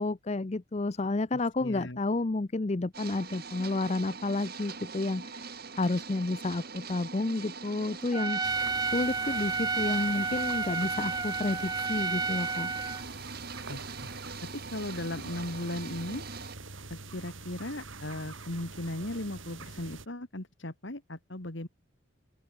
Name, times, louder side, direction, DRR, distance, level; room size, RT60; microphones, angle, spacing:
voice 1, 0.0-8.4 8.9-12.7, left 2 dB, 30° left, 0.5 m, -31 dB
voice 2, 1.3-2.0 13.7-14.1 14.4-16.2 16.9-21.7, left 1 dB, 60° left, 2.3 m, -37 dB
sound 1, 2.9-16.5, right 4 dB, 45° right, 3.8 m, -43 dB
Trumpet, 8.1-13.0, right 4 dB, 20° right, 0.6 m, -31 dB
sound 2, 8.4-20.1, right 3 dB, 70° right, 3.5 m, -45 dB
open air
head